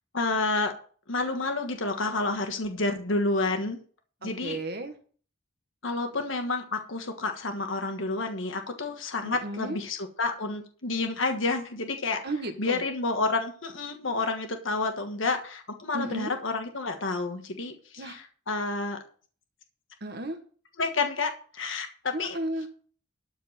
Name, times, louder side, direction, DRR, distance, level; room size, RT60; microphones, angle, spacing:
voice 1, 0.1-0.7 1.1-3.8 4.2-4.6 5.8-12.2 12.6-19.0 20.8-22.4, left 3 dB, 80° left, 5 dB, 1.4 m, -29 dB
voice 2, 4.2-5.0 9.2-9.8 12.2-12.8 15.9-16.4 18.0-18.2 20.0-20.4 22.1-22.7, right 1 dB, 55° right, 6 dB, 1.6 m, -34 dB
13.0 x 4.6 x 7.4 m, 0.43 s
head